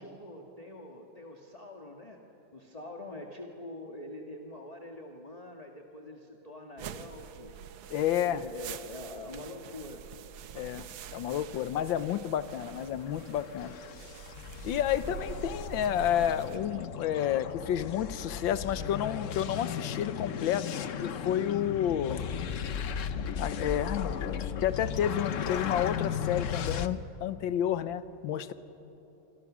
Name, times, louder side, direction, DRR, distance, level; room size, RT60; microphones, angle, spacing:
voice 1, 0.0-2.2 2.5-7.6 8.2-10.1, left 1 dB, 20° left, 2 dB, 1.5 m, -44 dB
sound 1, 6.8-16.6, right 8 dB, 80° right, 1.6 m, -45 dB
voice 2, 7.9-8.4 10.6-10.8 11.1-13.8 14.6-22.3 23.4-28.5, left 10 dB, 80° left, 13 dB, 1.6 m, -30 dB
sound 2, 12.5-26.9, left 7 dB, 60° left, 0.8 m, -36 dB
26.5 x 26.0 x 6.2 m, 2.9 s
omnidirectional pair, 2.1 m